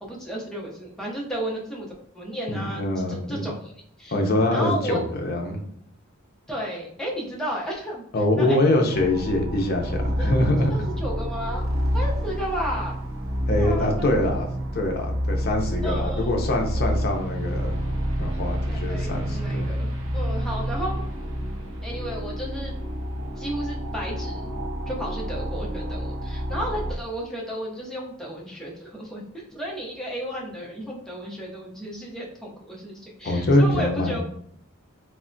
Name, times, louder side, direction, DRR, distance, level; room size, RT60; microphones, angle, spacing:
voice 1, 0.0-3.7 4.0-4.2 4.5-5.0 6.5-8.1 8.4-8.6 10.2-10.3 10.7-11.6 11.9-13.0 13.5-14.3 15.8-16.3 18.7-21.0 21.8-22.8 23.4-24.4 24.9-34.2, equal, 5° left, -4 dB, 0.6 m, -33 dB
voice 2, 2.5-3.4 4.1-5.6 8.1-10.7 13.5-17.8 18.2-19.7 33.2-34.2, left 1 dB, 50° left, 3 dB, 0.5 m, -24 dB
sound 1, 8.9-26.9, equal, 80° right, 0.5 m, -28 dB
3.2 x 2.1 x 2.5 m, 0.67 s
head